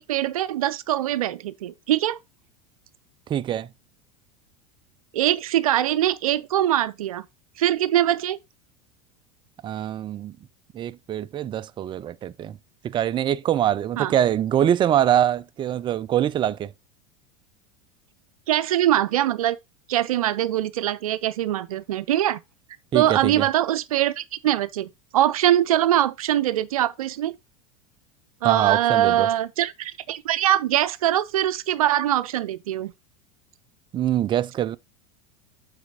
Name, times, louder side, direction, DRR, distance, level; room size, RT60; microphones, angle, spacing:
voice 1, 0.0-2.2 5.1-7.2 7.6-8.4 14.0-14.2 18.5-19.6 19.9-22.4 22.9-27.3 28.4-32.9, right 12 dB, 85° right, 0.5 m, -22 dB
voice 2, 3.3-3.7 9.6-10.4 10.7-12.6 12.8-16.7 22.9-23.5 28.4-29.3 33.9-34.8, right 11 dB, 25° right, 0.4 m, -24 dB
7.9 x 4.1 x 3.6 m
hypercardioid pair, 95°, 18 cm